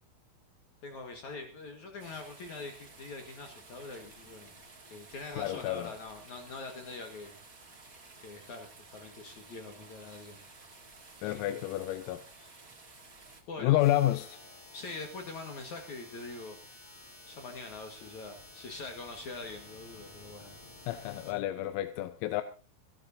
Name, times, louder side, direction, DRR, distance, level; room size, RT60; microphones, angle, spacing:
voice 1, 0.8-4.6 4.9-7.3 8.2-10.4 11.2-11.6 13.5-13.8 14.7-16.6 17.3-20.5, left 3 dB, 60° left, 2.0 m, -44 dB
sound 1, 2.0-13.4, right 3 dB, 70° right, 0.8 m, -54 dB
voice 2, 5.4-5.9 11.2-12.5 13.6-14.4 20.9-22.4, left 14 dB, 85° left, 3.5 m, -30 dB
sound 2, 13.8-21.3, left 2 dB, 35° left, 5.6 m, -52 dB
27.0 x 12.0 x 2.8 m
omnidirectional pair, 6.0 m